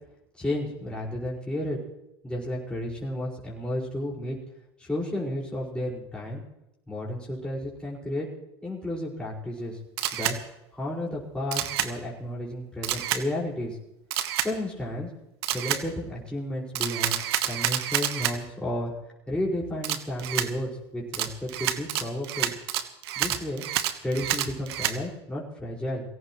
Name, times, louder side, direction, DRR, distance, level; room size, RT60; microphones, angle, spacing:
voice 1, 0.4-1.8 2.2-4.4 4.8-6.4 6.9-8.3 8.6-9.8 10.1-10.4 10.7-13.8 14.4-15.1 15.5-17.2 17.5-18.9 19.3-22.5 23.2-23.6 24.0-26.0, left 1 dB, 5° left, -5 dB, 5.5 m, -32 dB
Camera, 10.0-10.4 11.5-11.9 12.8-13.2 14.1-14.5 15.4-15.8 16.8-18.4 19.8-20.5 21.1-25.0, right 12 dB, 75° right, 1.3 m, -28 dB
23.0 x 17.0 x 3.2 m, 0.88 s
hypercardioid pair, 95°, 13 cm